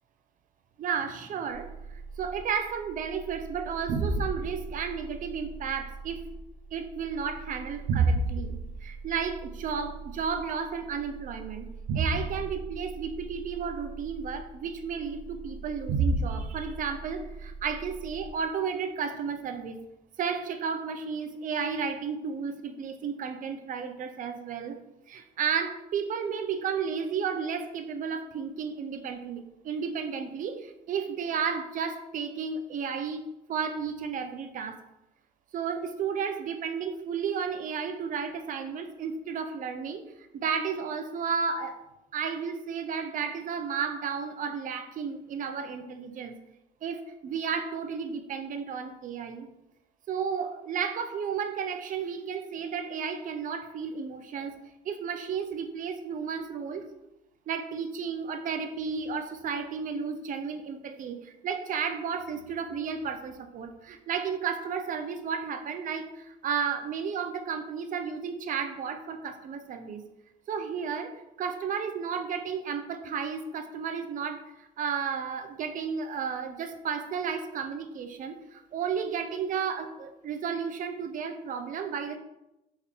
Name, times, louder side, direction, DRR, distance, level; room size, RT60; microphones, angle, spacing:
voice 1, 0.8-1.7 2.2-6.2 6.7-11.7 11.9-19.8 20.2-24.8 25.1-33.2 33.5-34.8 35.5-40.0 40.3-41.8 42.1-46.3 46.8-49.5 50.1-54.6 54.8-56.9 57.5-70.0 70.5-82.2, right 6 dB, 50° right, 7 dB, 0.6 m, -33 dB
sound 1, 1.5-18.3, right 3 dB, 80° right, 0.8 m, -34 dB
4.4 x 3.5 x 3.4 m, 0.92 s
cardioid pair, 110°, 17 cm